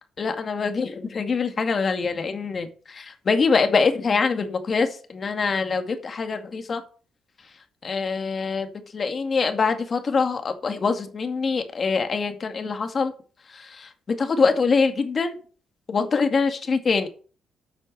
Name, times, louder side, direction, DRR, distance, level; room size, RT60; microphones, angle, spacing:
voice 1, 0.2-6.8 7.8-13.1 13.5-15.4 15.9-17.1, left 4 dB, 40° left, 6 dB, 2.1 m, -24 dB
9.7 x 6.3 x 6.7 m, 0.39 s
cardioid pair, 90°, 0 cm